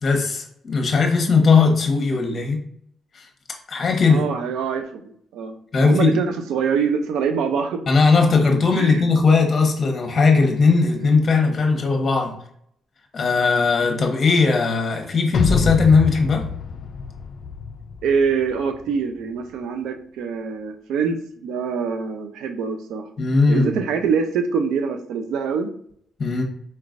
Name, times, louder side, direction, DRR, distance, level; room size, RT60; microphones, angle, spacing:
voice 1, 0.0-2.6 3.1-3.2 3.7-4.3 5.7-6.2 7.9-12.3 13.1-16.5 23.2-23.8 26.2-26.4, left 4 dB, 40° left, 2 dB, 1.0 m, -18 dB
voice 2, 2.1-2.4 4.1-7.9 8.7-9.0 18.0-23.1 23.5-25.7, right 6 dB, 85° right, 7 dB, 0.4 m, -24 dB
sound 1, 15.3-18.6, left 4 dB, 55° left, 0.4 m, -26 dB
4.3 x 3.2 x 2.5 m, 0.66 s
cardioid pair, 90°, 0 cm